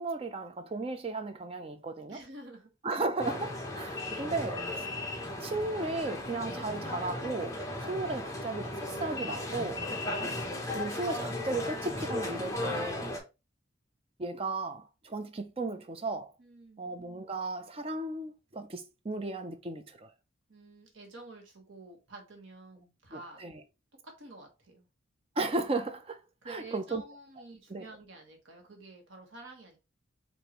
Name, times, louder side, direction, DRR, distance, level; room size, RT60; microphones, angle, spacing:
voice 1, 0.0-2.2 2.8-4.9 5.4-7.6 7.9-9.8 10.7-13.1 14.2-16.3 16.8-20.1 23.1-23.6 25.4-27.0 27.7-27.8, right 2 dB, 30° right, 0.5 m, -35 dB
voice 2, 2.1-2.7 16.4-16.8 20.5-23.4 24.0-24.9 26.4-29.8, right 2 dB, 75° right, 1.3 m, -49 dB
sound 1, 3.2-13.2, left 1 dB, 15° left, 0.8 m, -36 dB
4.9 x 2.6 x 2.9 m
head